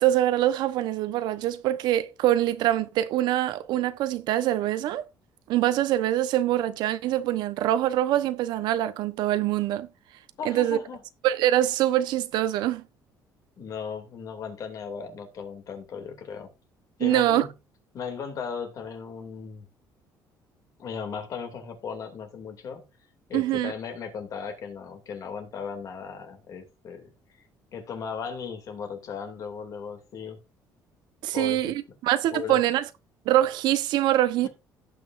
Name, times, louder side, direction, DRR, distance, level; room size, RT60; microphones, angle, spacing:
voice 1, 0.0-5.1 5.5-9.9 10.4-10.8 11.2-12.8 17.0-17.5 23.3-23.7 31.2-32.9 33.3-34.5, right 13 dB, 80° right, 1.0 m, -24 dB
voice 2, 10.4-11.0 13.6-16.5 17.0-17.5 17.9-19.7 20.8-22.8 23.3-27.1 27.7-30.4 31.3-31.7 32.3-32.6, left 6 dB, 50° left, 2.6 m, -36 dB
17.0 x 6.1 x 2.6 m
cardioid pair, 145°, 7 cm